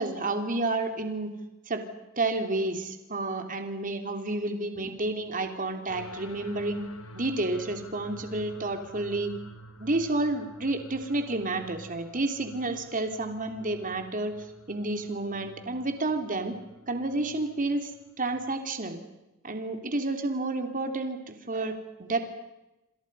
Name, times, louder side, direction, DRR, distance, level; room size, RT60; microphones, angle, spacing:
voice 1, 0.0-1.3 1.7-1.8 2.2-6.8 7.1-9.3 9.8-14.4 14.7-16.6 16.9-17.9 18.2-19.0 19.4-22.2, right 2 dB, 40° right, 6 dB, 3.1 m, -30 dB
sound 1, 5.9-18.6, left 1 dB, 85° left, 3.7 m, -49 dB
27.5 x 27.5 x 5.5 m, 0.97 s
head